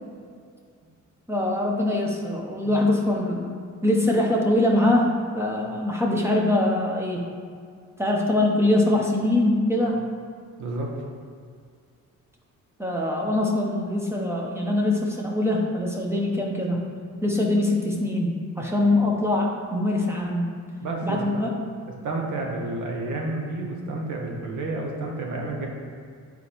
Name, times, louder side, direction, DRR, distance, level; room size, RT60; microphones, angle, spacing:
voice 1, 1.3-3.5 3.8-7.2 8.0-10.0 12.8-16.8 17.2-20.5 21.0-21.6, left 1 dB, 10° right, -1 dB, 0.5 m, -23 dB
voice 2, 10.6-10.9 20.8-21.2 22.0-25.7, right 2 dB, 75° right, 0 dB, 1.0 m, -30 dB
8.2 x 4.0 x 2.9 m, 2.1 s
wide cardioid pair, 175°, 30 cm